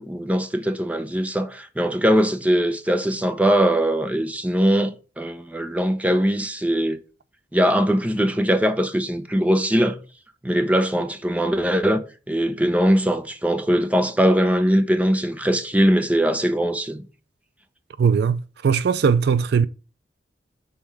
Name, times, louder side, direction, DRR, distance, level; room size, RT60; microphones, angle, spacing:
voice 1, 0.0-7.0 7.5-10.0 10.4-12.0 12.3-17.0, equal, 10° right, 0.7 m, -21 dB
voice 2, 18.0-19.7, right 6 dB, 65° right, 0.4 m, -19 dB
5.6 x 4.3 x 4.6 m
head